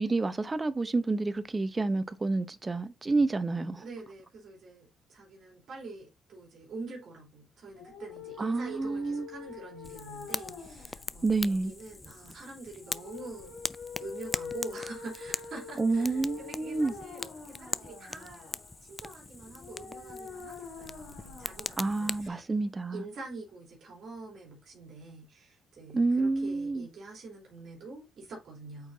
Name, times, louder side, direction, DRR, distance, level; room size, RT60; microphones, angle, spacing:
voice 1, 0.0-3.8 8.4-9.3 11.2-11.7 15.8-16.9 21.8-23.0 25.9-26.9, right 3 dB, 25° right, 0.8 m, -29 dB
voice 2, 3.8-13.6 14.0-18.5 18.8-22.4 22.9-28.9, right 3 dB, 65° right, 3.2 m, -45 dB
sound 1, 7.7-22.7, left 5 dB, 85° left, 3.8 m, -46 dB
Fire, 9.8-22.3, left 2 dB, 20° left, 0.4 m, -41 dB
8.5 x 4.6 x 2.7 m
cardioid pair, 90°, 0 cm